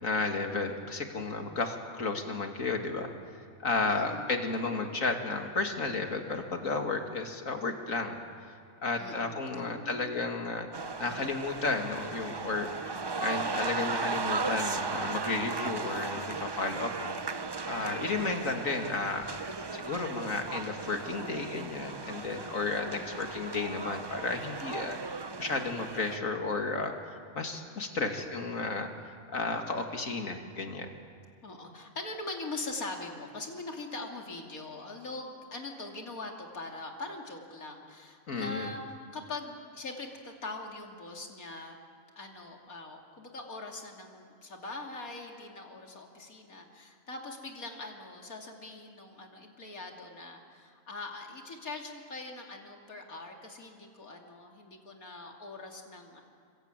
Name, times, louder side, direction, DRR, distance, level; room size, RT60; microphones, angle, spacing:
voice 1, 0.0-3.1 3.6-8.1 8.8-10.7 11.0-12.7 13.2-17.2 17.6-19.2 19.7-28.9 29.3-30.9 38.3-38.7, left 3 dB, 70° left, 4 dB, 2.8 m, -33 dB
voice 2, 3.9-4.2 4.6-4.9 8.9-10.3 22.8-23.2 31.4-41.8 42.2-56.2, left 2 dB, 85° left, 1 dB, 3.2 m, -42 dB
sound 1, 10.7-26.2, right 4 dB, 35° right, 0.4 m, -36 dB
28.0 x 23.5 x 9.1 m, 2.2 s
omnidirectional pair, 1.5 m